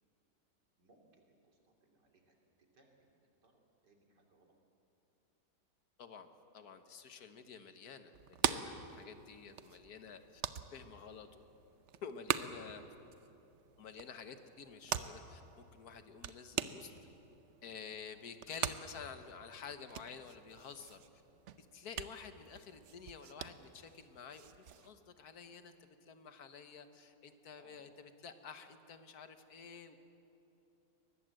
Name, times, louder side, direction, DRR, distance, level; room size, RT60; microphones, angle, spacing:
voice 1, 0.8-2.4 2.7-3.2 3.4-4.5 27.6-27.8, right 1 dB, 75° right, 2 dB, 3.3 m, -68 dB
voice 2, 6.5-10.4 10.7-11.4 12.0-12.8 13.8-16.9 17.6-21.0 21.6-30.0, left 6 dB, 65° left, 9 dB, 1.7 m, -50 dB
sound 1, 8.1-24.9, right 8 dB, 60° right, 0.8 m, -43 dB
22.5 x 19.5 x 7.7 m, 2.8 s
omnidirectional pair, 1.8 m